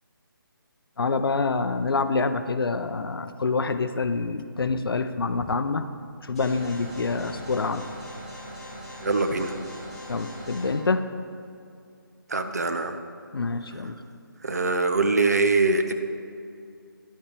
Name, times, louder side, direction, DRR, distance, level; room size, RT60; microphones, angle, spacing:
voice 1, 1.0-5.9 6.2-7.8 10.1-11.1 13.3-13.9, left 4 dB, 85° left, 10 dB, 0.6 m, -26 dB
sound 1, 6.3-10.7, equal, ahead, 1.0 m, -40 dB
voice 2, 9.0-9.5 12.3-13.0 14.4-15.9, right 3 dB, 45° right, 8 dB, 0.5 m, -23 dB
10.0 x 7.3 x 3.4 m, 2.4 s
hypercardioid pair, 175°, 12 cm